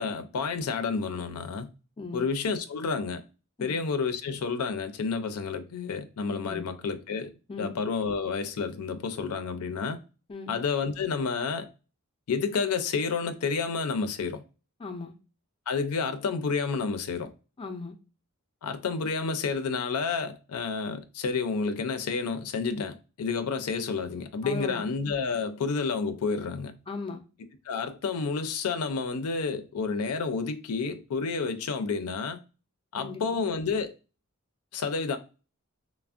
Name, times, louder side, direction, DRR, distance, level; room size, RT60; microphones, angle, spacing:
voice 1, 0.0-1.7 2.1-3.2 3.6-7.3 7.6-10.0 10.5-11.7 12.3-14.4 15.7-17.3 18.6-26.8 27.7-32.4 32.9-33.9 34.7-35.2, left 5 dB, 90° left, 0.4 m, -30 dB
voice 2, 14.8-15.1 17.6-18.0 24.4-24.8 26.9-27.2 33.0-33.2, left 3 dB, 25° left, 0.4 m, -37 dB
3.3 x 2.0 x 2.4 m
head